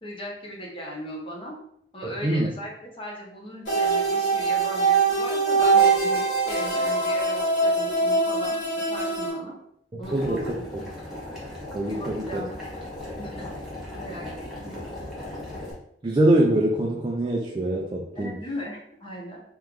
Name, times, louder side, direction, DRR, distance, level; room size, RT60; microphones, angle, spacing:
voice 1, 0.0-1.6 1.9-2.7 3.0-9.5 10.0-10.9 11.9-12.5 13.2-13.5 14.0-14.7 18.1-19.4, equal, 30° left, -3 dB, 1.0 m, -38 dB
voice 2, 2.0-2.5 9.9-10.8 11.7-12.4 16.0-18.4, right 1 dB, 25° right, -1 dB, 0.4 m, -24 dB
sound 1, 3.6-9.3, right 4 dB, 75° left, 1.5 m, -22 dB
Boiling, 10.0-15.7, left 1 dB, ahead, 1.3 m, -37 dB
3.3 x 3.0 x 3.6 m, 0.72 s
head